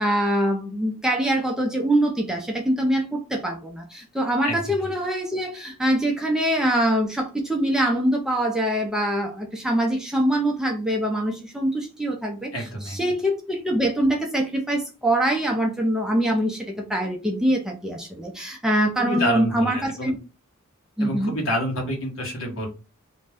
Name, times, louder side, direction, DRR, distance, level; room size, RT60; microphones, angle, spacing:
voice 1, 0.0-20.2 21.0-21.3, right 1 dB, 5° right, 0 dB, 0.5 m, -24 dB
voice 2, 4.4-4.8 12.5-13.0 19.0-20.1 21.0-22.7, equal, 70° left, 0 dB, 1.1 m, -28 dB
2.5 x 2.2 x 3.4 m, 0.31 s
head